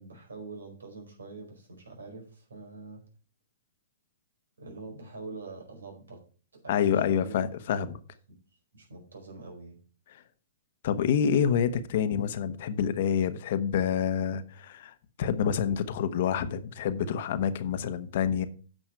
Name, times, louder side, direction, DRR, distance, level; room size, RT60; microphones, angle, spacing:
voice 1, 0.0-3.0 4.6-6.2 6.5-7.3 8.7-9.8, right 3 dB, 85° right, 4.7 m, -44 dB
voice 2, 6.7-8.0 10.1-10.2 10.8-18.4, left 8 dB, 60° left, 1.1 m, -27 dB
9.2 x 6.1 x 5.7 m
hypercardioid pair, 125°, 0 cm